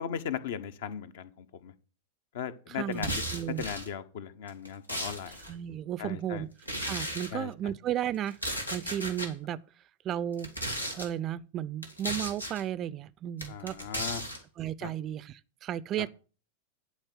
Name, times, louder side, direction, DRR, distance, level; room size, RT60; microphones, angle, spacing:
voice 1, 0.0-1.7 2.3-3.2 3.6-5.3 6.0-6.4 7.3-7.5 13.5-14.2 14.8-14.9, left 8 dB, 55° left, 1.0 m, -37 dB
voice 2, 2.7-3.6 5.5-6.5 6.8-8.4 8.7-9.6 10.0-10.5 10.9-13.8 14.6-16.1, right 11 dB, 30° right, 0.5 m, -34 dB
sound 1, 2.9-3.9 4.5-5.5 6.6-7.3 8.3-9.3 10.3-11.1 11.8-12.6 13.4-14.4, equal, 90° left, 2.1 m, -35 dB
10.5 x 4.6 x 7.7 m
figure-of-eight pair, 90°, 0 cm